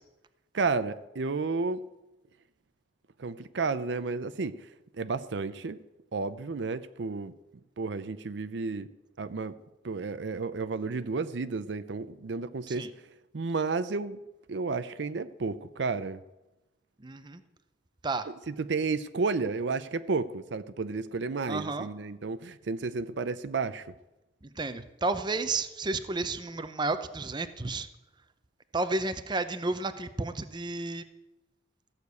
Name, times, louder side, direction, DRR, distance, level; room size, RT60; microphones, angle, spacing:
voice 1, 0.5-1.8 3.2-4.5 5.0-5.8 6.1-7.3 7.8-8.9 9.2-9.5 9.8-12.9 13.3-14.2 14.5-16.2 18.3-23.9, right 4 dB, 70° right, 0.5 m, -32 dB
voice 2, 17.0-17.4 18.0-18.2 21.5-21.9 24.6-27.9 28.7-31.0, right 3 dB, 25° right, 0.7 m, -31 dB
14.5 x 6.7 x 8.2 m
head